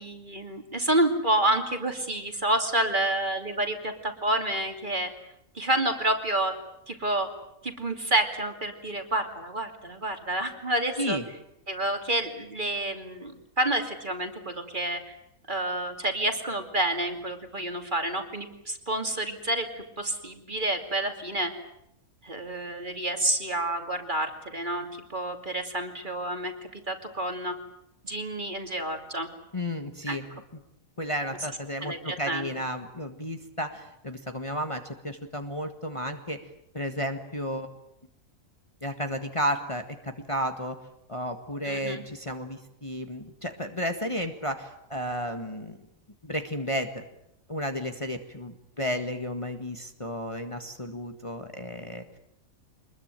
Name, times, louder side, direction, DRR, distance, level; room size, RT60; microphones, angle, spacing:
voice 1, 0.0-5.1 5.5-6.5 6.9-7.3 7.6-11.2 11.7-15.0 15.5-21.5 22.2-27.5 28.0-29.3 30.1-30.2 31.8-32.5 41.6-42.0, right 1 dB, 35° right, 6 dB, 2.9 m, -29 dB
voice 2, 29.5-30.2 31.0-36.4 36.7-37.7 38.8-40.8 41.1-45.8 46.2-47.0 47.5-52.2, equal, 20° left, 6 dB, 1.7 m, -32 dB
25.5 x 21.0 x 9.1 m, 0.78 s
omnidirectional pair, 1.4 m